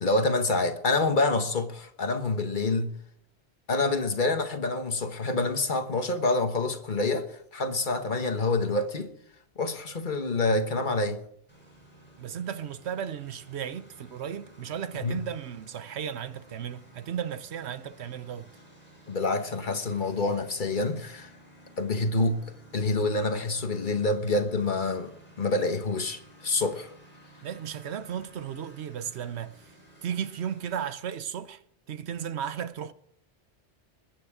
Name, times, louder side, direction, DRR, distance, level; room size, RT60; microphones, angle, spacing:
voice 1, 0.0-2.9 3.7-9.1 9.6-11.2 15.0-15.2 19.1-21.3 21.8-26.9, left 2 dB, 45° left, 1.3 m, -27 dB
Engine, 11.5-30.9, right 1 dB, 10° left, 6.0 m, -54 dB
voice 2, 12.2-18.5 27.4-29.6 30.0-31.6 31.9-32.9, right 8 dB, 70° right, 1.1 m, -35 dB
21.0 x 9.7 x 4.9 m
omnidirectional pair, 1.2 m